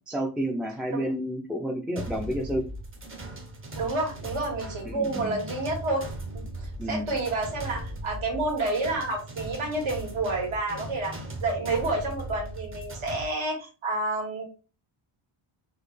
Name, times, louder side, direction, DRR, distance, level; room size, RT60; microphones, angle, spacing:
voice 1, 0.1-2.6 4.8-5.4 6.8-7.1, equal, ahead, 0 dB, 0.4 m, -30 dB
sound 1, 2.0-13.3, right 1 dB, 25° right, 0.7 m, -38 dB
voice 2, 3.8-6.0 6.3-6.4 6.9-14.5, right 2 dB, 75° right, -1 dB, 1.9 m, -29 dB
4.2 x 2.8 x 3.2 m, 0.34 s
wide cardioid pair, 180°, 50 cm